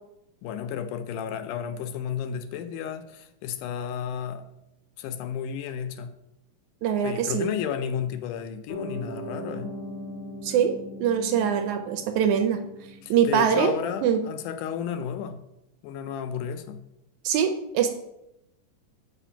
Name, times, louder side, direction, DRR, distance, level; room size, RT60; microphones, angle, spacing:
voice 1, 0.4-4.4 5.0-6.1 7.0-9.7 13.0-15.4 15.8-16.8, left 8 dB, 80° left, 8 dB, 2.1 m, -32 dB
voice 2, 6.8-7.5 10.4-12.6 13.1-13.7 14.0-14.2 17.2-17.9, right 8 dB, 75° right, 7 dB, 1.9 m, -23 dB
Piano, 8.7-15.2, equal, 65° left, 0.5 m, -41 dB
7.7 x 5.0 x 5.7 m, 0.88 s
omnidirectional pair, 3.8 m